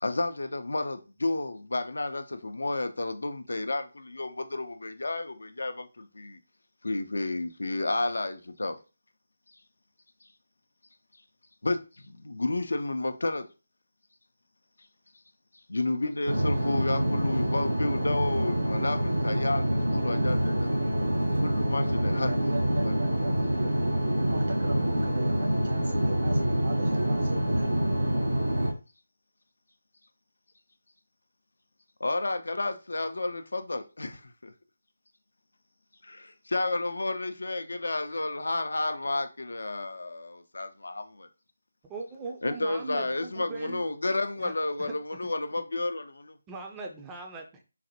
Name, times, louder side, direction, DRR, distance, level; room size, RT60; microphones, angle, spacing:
voice 1, 0.0-6.4 6.8-8.8 11.6-13.5 15.7-20.7 21.4-22.9 32.0-34.5 36.0-41.3 42.4-46.4, left 2 dB, 70° left, 0.4 m, -31 dB
sound 1, 16.3-28.7, right 1 dB, 90° right, 0.8 m, -26 dB
voice 2, 22.2-27.8, right 2 dB, 45° right, 0.9 m, -36 dB
voice 3, 41.9-43.8 44.4-44.5 44.9-45.0 46.5-47.6, right 3 dB, 10° right, 0.4 m, -40 dB
3.9 x 2.1 x 2.8 m
figure-of-eight pair, 155°, 0 cm